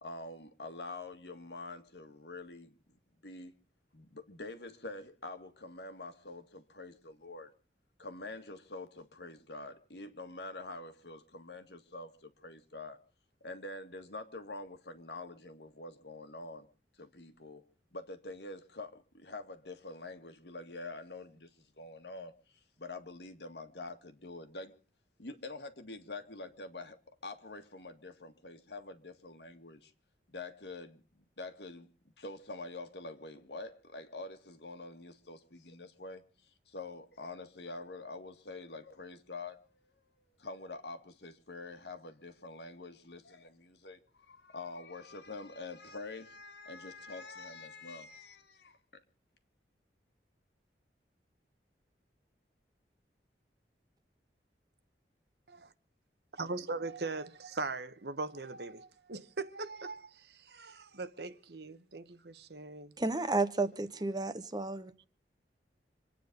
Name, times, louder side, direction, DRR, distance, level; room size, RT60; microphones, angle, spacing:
voice 1, 0.0-2.8 3.2-3.5 3.9-7.5 8.0-13.0 13.4-16.7 17.0-17.6 17.9-24.8 25.2-29.9 30.3-31.9 32.2-36.2 36.7-39.6 40.4-48.8, left 2 dB, 75° left, 1.9 m, -46 dB
voice 2, 56.3-62.9, right 3 dB, 70° right, 1.1 m, -40 dB
voice 3, 63.0-64.9, right 3 dB, 25° right, 1.1 m, -32 dB
26.5 x 9.4 x 5.3 m
head